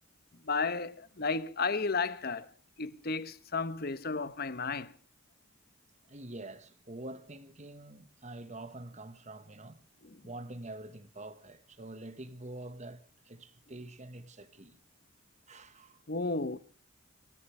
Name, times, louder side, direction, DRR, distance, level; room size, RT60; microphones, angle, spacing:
voice 1, 0.4-2.5 2.8-4.9 10.0-10.2 16.1-16.6, left 4 dB, 45° left, 1.0 m, -33 dB
voice 2, 6.1-9.8 10.2-14.8 15.5-16.0, right 2 dB, 35° right, 1.5 m, -46 dB
29.0 x 14.0 x 3.3 m
head